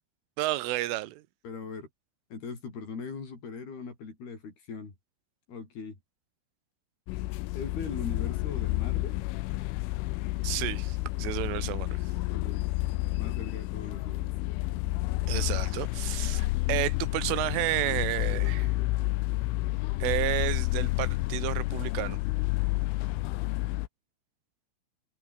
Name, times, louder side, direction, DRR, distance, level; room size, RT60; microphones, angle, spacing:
voice 1, 0.4-1.2 10.4-12.0 15.3-18.7 20.0-22.2, right 17 dB, 90° right, 3.7 m, -31 dB
voice 2, 1.4-1.9 2.3-4.9 5.5-6.0 7.5-9.2 12.3-12.6 13.1-14.3, left 5 dB, 55° left, 7.8 m, -40 dB
sound 1, 7.1-23.9, left 19 dB, 85° left, 3.3 m, -30 dB
omnidirectional pair, 5.5 m